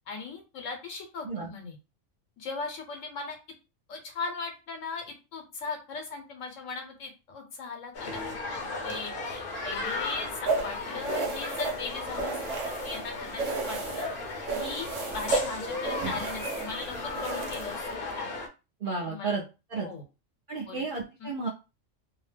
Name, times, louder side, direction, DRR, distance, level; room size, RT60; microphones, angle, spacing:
voice 1, 0.1-1.8 2.4-3.4 3.9-12.6 12.8-14.1 14.5-18.3 19.1-19.3 19.8-20.0 20.6-20.8 21.2-21.3, left 4 dB, 80° left, 3 dB, 1.1 m, -38 dB
sound 1, 7.9-18.5, left 3 dB, 55° left, 0.7 m, -36 dB
sound 2, 10.5-13.0 13.4-14.1 14.5-17.9, right 4 dB, 75° right, 1.1 m, -32 dB
voice 2, 18.8-19.4 19.7-19.9 20.5-21.5, right 4 dB, 50° right, -3 dB, 0.7 m, -32 dB
2.7 x 2.1 x 3.2 m, 0.29 s
omnidirectional pair, 1.3 m